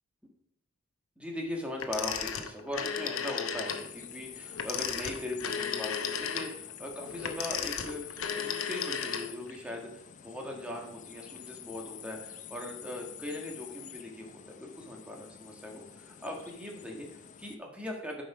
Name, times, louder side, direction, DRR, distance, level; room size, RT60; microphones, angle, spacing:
voice 1, 1.2-18.2, left 1 dB, 5° right, 0 dB, 1.6 m, -40 dB
Telephone, 1.8-3.9 4.5-9.6, left 7 dB, 75° left, 0.8 m, -34 dB
sound 1, 3.6-17.6, left 9 dB, 40° left, 0.5 m, -48 dB
9.2 x 5.3 x 4.8 m, 0.77 s
head